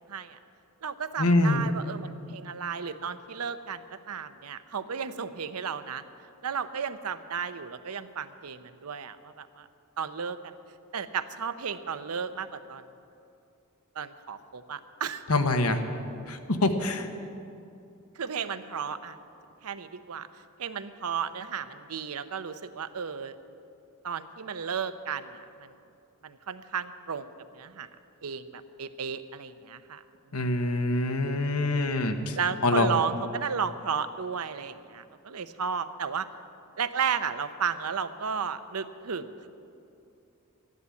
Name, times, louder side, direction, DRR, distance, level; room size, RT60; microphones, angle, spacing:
voice 1, 0.1-0.4 0.8-6.0 6.4-9.7 10.0-10.5 10.9-12.8 14.0-15.2 18.2-19.2 19.6-20.3 20.6-23.4 24.0-25.7 26.2-27.9 28.2-30.0 32.4-36.3 36.8-39.5, right 6 dB, 90° right, 11 dB, 0.7 m, -33 dB
voice 2, 1.2-1.6 15.3-15.8 16.3-17.1 30.3-32.4 32.6-32.9, left 2 dB, 85° left, 6 dB, 1.2 m, -25 dB
12.5 x 11.0 x 8.3 m, 2.6 s
head